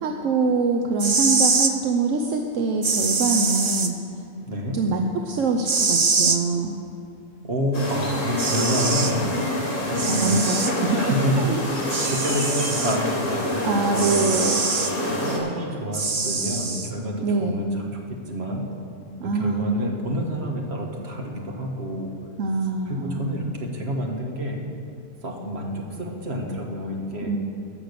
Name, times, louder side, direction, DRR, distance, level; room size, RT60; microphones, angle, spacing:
voice 1, 0.0-3.9 4.7-6.8 10.1-10.8 11.4-11.6 13.6-14.6 17.2-17.6 19.2-19.9 22.4-23.2 27.3-27.4, right 3 dB, 75° right, 3 dB, 1.1 m, -24 dB
sound 1, 0.9-1.7 2.8-3.9 5.7-6.4 7.9-8.0 8.4-9.1 10.0-10.7 11.9-13.0 13.9-14.9 15.9-16.9, right 4 dB, 35° right, 0.5 m, -23 dB
voice 2, 4.5-4.8 7.4-9.4 9.8-10.5 11.0-11.4 12.2-14.4 15.0-17.8 18.3-18.6 19.2-22.1 22.8-24.6 25.2-27.3, equal, 55° right, 0 dB, 1.7 m, -28 dB
sound 2, 7.7-15.4, left 1 dB, 75° left, 2.5 m, -27 dB
16.0 x 6.4 x 6.7 m, 2.6 s
omnidirectional pair, 1.3 m